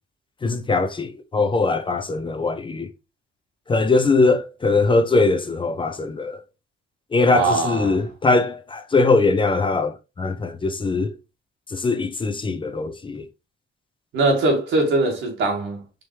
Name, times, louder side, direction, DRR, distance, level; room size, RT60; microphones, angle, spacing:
voice 1, 0.4-2.9 3.7-6.4 7.1-11.1 11.7-13.3, left 3 dB, 25° left, 0.6 m, -21 dB
voice 2, 7.3-8.0 14.1-16.0, right 2 dB, 80° right, 1.8 m, -21 dB
4.9 x 3.0 x 3.2 m
cardioid pair, 90°, 20 cm